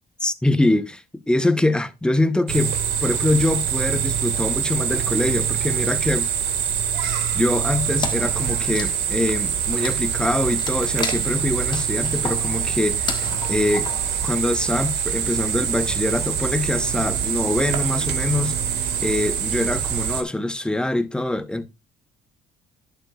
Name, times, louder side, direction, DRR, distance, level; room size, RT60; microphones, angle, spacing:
voice 1, 0.2-6.3 7.1-13.9 14.2-18.6 19.0-21.7, left 2 dB, 5° left, 0.8 m, -24 dB
sound 1, 2.5-20.2, right 8 dB, 90° right, 1.9 m, -24 dB
Wood, 8.0-14.7, left 5 dB, 25° left, 1.3 m, -34 dB
11.0 x 9.1 x 2.3 m
cardioid pair, 110°, 17 cm